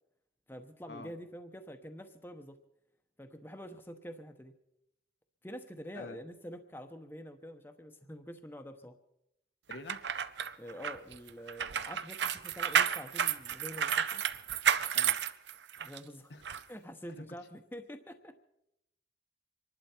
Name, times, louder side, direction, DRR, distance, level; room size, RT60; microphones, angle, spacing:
voice 1, 0.5-2.6 3.2-4.5 5.4-8.9 10.6-14.2 15.8-16.3 16.7-18.3, equal, 10° left, 6 dB, 1.0 m, -46 dB
voice 2, 9.7-10.0 14.9-15.2 16.3-16.4 17.1-17.2, left 2 dB, 75° left, 7 dB, 1.1 m, -46 dB
sound 1, 9.7-16.0 16.4-16.6, right 8 dB, 80° right, 0.7 m, -31 dB
26.5 x 11.5 x 4.4 m, 0.82 s
head